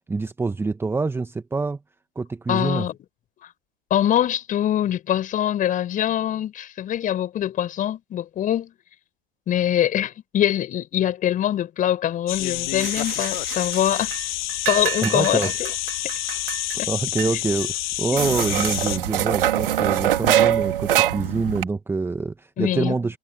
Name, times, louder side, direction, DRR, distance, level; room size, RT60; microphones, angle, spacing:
voice 1, 0.1-1.8 2.1-2.9 15.0-15.5 16.3-16.4 16.9-23.2, right 3 dB, 10° right, 1.5 m, -26 dB
voice 2, 2.5-2.9 3.4-3.5 3.9-8.7 9.5-14.1 14.7-15.7 16.0-16.2 16.8-16.9 18.1-18.3 22.6-22.9, left 11 dB, 25° left, 6.1 m, -23 dB
sound 1, 12.3-19.0, left 17 dB, 50° left, 1.1 m, -28 dB
sound 2, 12.8-14.2 14.5-16.8 17.2-17.3 17.6-17.7 18.2-21.6, right 11 dB, 60° right, 3.2 m, -24 dB
figure-of-eight pair, 105°, 31 cm